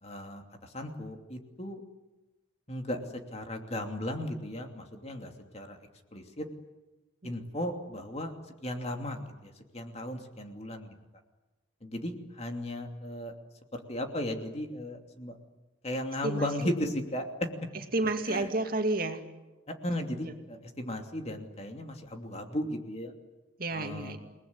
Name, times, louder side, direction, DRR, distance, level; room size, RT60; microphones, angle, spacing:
voice 1, 0.0-1.8 2.7-3.0 3.3-5.8 6.1-6.5 7.2-10.9 11.8-13.3 13.7-15.4 15.8-17.5 18.3-18.5 19.7-23.1 23.7-24.2, left 1 dB, 30° left, 4 dB, 2.9 m, -36 dB
voice 2, 16.2-16.7 17.9-19.2 20.2-20.4 23.6-24.2, right 2 dB, 45° right, 5 dB, 2.5 m, -31 dB
29.5 x 20.0 x 9.7 m, 1.1 s
head